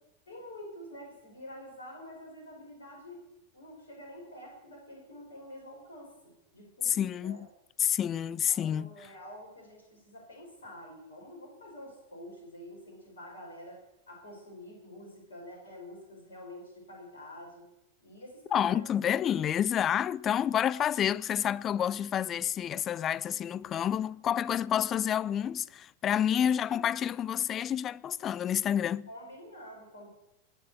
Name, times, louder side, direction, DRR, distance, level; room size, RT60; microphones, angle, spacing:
voice 1, 0.3-3.2 3.5-7.4 8.5-13.8 14.1-17.7 18.0-18.8 26.7-26.9 29.1-30.1, left 1 dB, 70° left, 5.4 m, -48 dB
voice 2, 6.8-7.5 7.8-8.9 18.5-29.1, left 9 dB, 30° left, 0.4 m, -29 dB
20.0 x 6.8 x 8.1 m
figure-of-eight pair, 90°, 0 cm